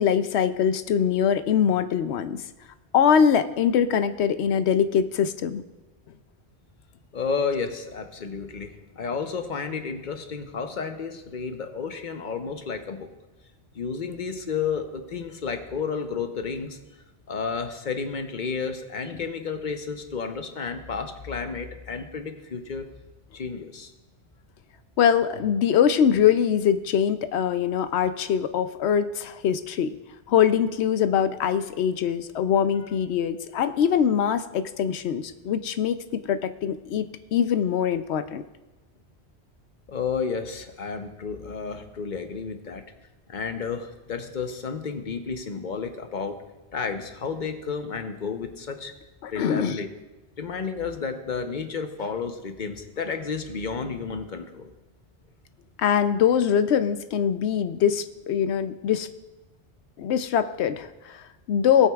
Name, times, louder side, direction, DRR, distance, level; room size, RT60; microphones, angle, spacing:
voice 1, 0.0-2.4 2.9-5.6 25.0-29.9 30.3-37.1 37.3-38.4 49.2-49.8 55.8-59.1 60.0-61.9, left 8 dB, 85° left, 11 dB, 0.9 m, -23 dB
voice 2, 7.1-13.1 13.7-16.8 17.3-22.9 23.3-23.9 39.9-42.8 43.3-46.4 46.7-48.9 49.3-49.9 50.4-54.7, left 5 dB, 50° left, 6 dB, 0.9 m, -31 dB
18.5 x 8.4 x 2.4 m, 1.1 s
omnidirectional pair, 1.1 m